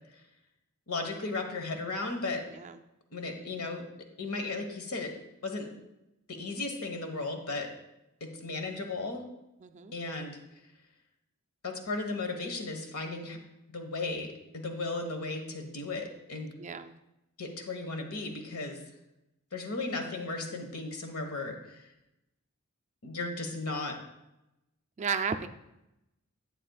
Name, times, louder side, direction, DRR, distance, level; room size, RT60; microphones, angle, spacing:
voice 1, 0.9-2.4 3.1-3.9 4.2-5.1 5.4-5.7 6.3-7.7 8.2-9.2 9.9-10.4 11.6-13.4 13.7-16.5 17.4-18.8 19.5-21.9 23.0-24.0, left 3 dB, 75° left, 4 dB, 1.4 m, -35 dB
voice 2, 9.6-9.9 16.6-16.9 25.0-25.5, right 5 dB, 30° right, 8 dB, 0.4 m, -33 dB
11.0 x 8.9 x 2.4 m, 0.90 s
head